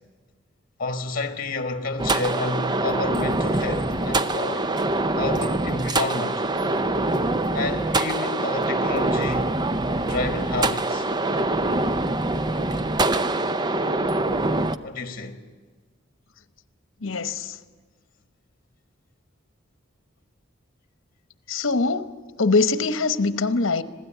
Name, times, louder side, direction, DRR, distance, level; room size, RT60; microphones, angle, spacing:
voice 1, 0.8-4.7 5.2-6.4 7.5-9.6 10.1-11.0 14.8-15.4, left 3 dB, 45° left, 1.7 m, -30 dB
sound 1, 2.0-14.8, right 2 dB, 20° right, 0.6 m, -24 dB
voice 2, 17.0-17.5 21.5-22.1 22.4-23.8, left 3 dB, 75° left, 1.0 m, -22 dB
26.0 x 16.5 x 9.2 m
head